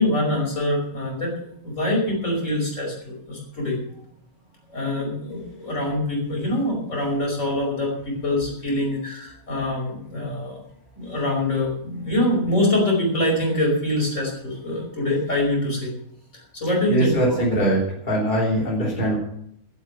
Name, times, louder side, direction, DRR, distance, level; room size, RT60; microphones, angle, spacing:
voice 1, 0.0-1.3 1.6-3.8 4.7-10.6 11.0-15.9 16.3-17.4, left 1 dB, 60° left, -1 dB, 5.8 m, -24 dB
voice 2, 16.9-19.2, right 1 dB, 35° left, -5 dB, 3.6 m, -22 dB
14.0 x 8.3 x 8.9 m, 0.71 s
omnidirectional pair, 1.5 m